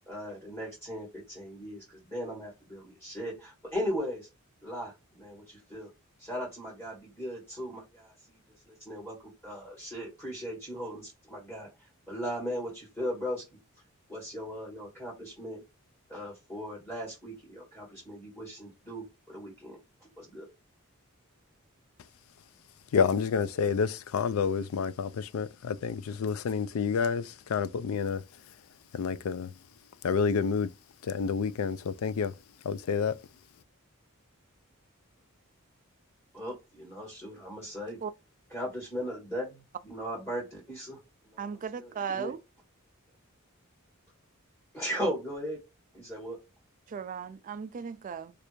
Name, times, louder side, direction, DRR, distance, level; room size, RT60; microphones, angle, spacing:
voice 1, 0.1-4.3 4.6-5.9 6.2-8.4 8.7-9.2 9.4-13.4 14.1-15.6 16.1-20.5 36.3-38.0 38.5-41.0 41.2-42.3 44.7-45.6 45.9-46.4, equal, 10° left, 2.0 m, -38 dB
voice 2, 22.9-28.2 28.9-29.5 30.0-30.7 31.0-32.3 32.6-33.2, left 6 dB, 70° left, 0.4 m, -29 dB
voice 3, 41.4-42.4 46.9-48.3, right 6 dB, 40° right, 0.3 m, -36 dB
3.2 x 2.5 x 3.0 m
head